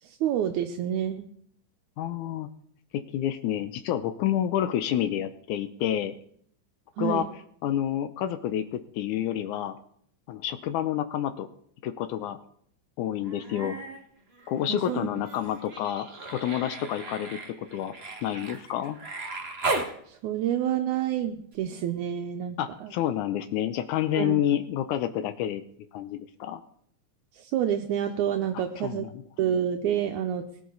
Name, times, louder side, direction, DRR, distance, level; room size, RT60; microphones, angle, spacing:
voice 1, 0.0-1.3 7.0-7.3 14.7-15.1 20.1-22.9 24.2-24.4 27.3-29.1 29.4-30.5, right 10 dB, 80° right, 5 dB, 2.2 m, -28 dB
voice 2, 2.0-2.5 2.9-6.1 7.0-7.3 7.6-9.8 10.3-11.5 11.8-12.4 13.0-13.8 14.5-17.4 17.7-17.9 18.2-19.0 22.6-25.6 25.9-26.6 28.5-29.1, left 11 dB, 80° left, 9 dB, 2.2 m, -29 dB
Human voice, 13.2-14.0 14.3-19.9 21.5-21.6, right 3 dB, 30° right, 1.2 m, -36 dB
19.0 x 11.0 x 3.9 m, 0.65 s
omnidirectional pair, 3.5 m